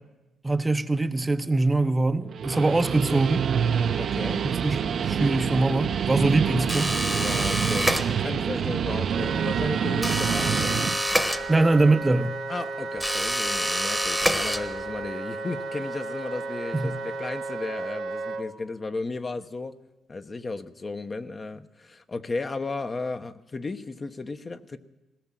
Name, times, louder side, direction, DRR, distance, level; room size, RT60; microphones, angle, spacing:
voice 1, 0.4-3.5 4.4-4.8 5.0-6.9 11.5-12.4 16.7-17.0, right 2 dB, 20° right, 0.9 m, -23 dB
Guitar, 2.2-11.0, right 7 dB, 55° right, 0.9 m, -26 dB
voice 2, 2.5-3.2 4.0-4.5 6.5-6.8 7.1-10.8 12.5-19.8 20.1-24.8, left 3 dB, 30° left, 1.1 m, -35 dB
sound 1, 6.7-8.5 10.0-11.9 13.0-15.0, equal, ahead, 1.3 m, -27 dB
Wind instrument woodwind instrument, 9.1-18.4, right 3 dB, 75° right, 1.5 m, -34 dB
20.0 x 18.0 x 7.6 m
cardioid pair, 90°, 0 cm